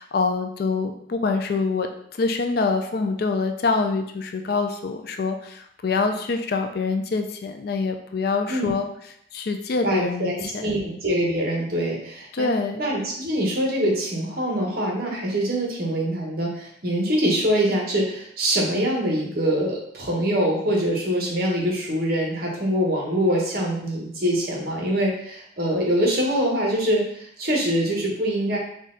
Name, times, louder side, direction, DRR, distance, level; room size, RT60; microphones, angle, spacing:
voice 1, 0.0-1.9 2.2-8.9 9.3-10.8 12.3-12.9, left 4 dB, 50° left, 6 dB, 0.3 m, -25 dB
voice 2, 9.8-12.5 12.8-28.6, equal, 50° right, -2 dB, 1.0 m, -24 dB
4.1 x 2.3 x 3.7 m, 0.69 s
head